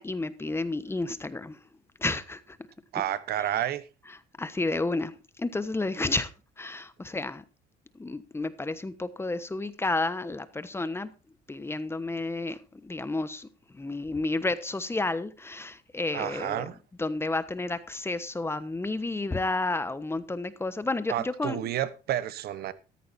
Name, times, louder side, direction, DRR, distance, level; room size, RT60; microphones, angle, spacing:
voice 1, 0.0-1.6 2.0-2.6 3.4-3.5 4.4-6.3 6.6-7.4 7.9-11.1 11.5-13.5 13.7-16.7 17.0-21.7, left 2 dB, 15° left, 1.1 m, -31 dB
voice 2, 2.9-3.9 16.1-16.8 21.1-22.7, right 12 dB, 65° right, 1.1 m, -30 dB
15.0 x 14.0 x 2.7 m
cardioid pair, 110°, 17 cm